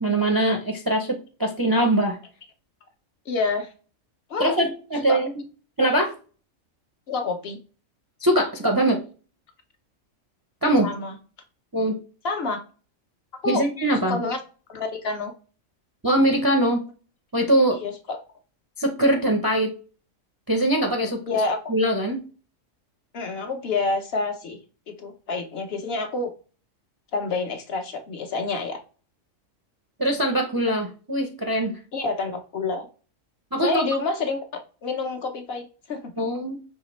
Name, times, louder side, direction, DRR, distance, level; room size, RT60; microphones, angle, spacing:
voice 1, 0.0-2.2 4.4-5.3 5.8-6.1 8.2-9.0 10.6-10.9 11.7-11.9 13.5-14.2 16.0-16.8 17.3-17.8 18.8-19.7 20.5-21.4 21.7-22.2 30.0-31.8 33.5-33.9 36.2-36.5, right 1 dB, 30° right, 2 dB, 0.4 m, -22 dB
voice 2, 3.3-3.7 4.3-4.5 5.1-5.2 7.1-7.6 10.8-11.1 12.2-12.6 13.4-13.7 14.1-14.4 14.7-15.3 17.8-18.2 21.3-21.6 23.1-24.6 24.9-26.3 27.1-28.8 31.9-32.9 33.6-34.4 34.8-36.1, left 3 dB, 60° left, 5 dB, 0.8 m, -28 dB
5.6 x 3.1 x 3.0 m, 0.37 s
omnidirectional pair, 1.3 m